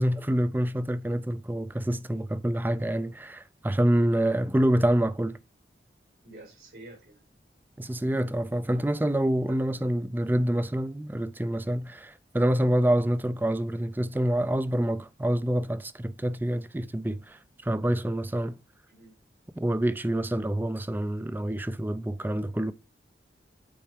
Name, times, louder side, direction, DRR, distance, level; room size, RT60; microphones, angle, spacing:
voice 1, 0.0-5.4 7.8-18.6 19.6-22.7, right 1 dB, 10° right, 0.4 m, -27 dB
voice 2, 6.2-7.2 9.5-9.8 18.9-19.1, right 2 dB, 80° right, 4.6 m, -49 dB
8.5 x 4.6 x 3.6 m
head